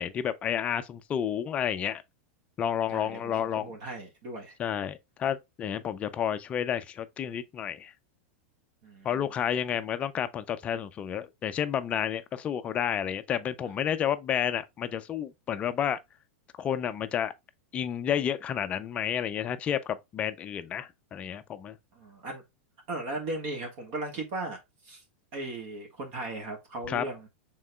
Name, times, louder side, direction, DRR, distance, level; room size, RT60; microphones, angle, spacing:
voice 1, 0.0-2.0 2.6-3.7 4.6-7.9 9.0-16.0 16.6-17.3 17.7-21.8 26.9-27.0, left 9 dB, 20° left, 0.4 m, -30 dB
voice 2, 2.9-4.5 8.8-9.3 21.9-22.4 22.9-24.6 24.8-25.0 25.3-27.3, right 2 dB, 45° right, 1.5 m, -37 dB
6.3 x 3.7 x 2.2 m
supercardioid pair, 160°, 7 cm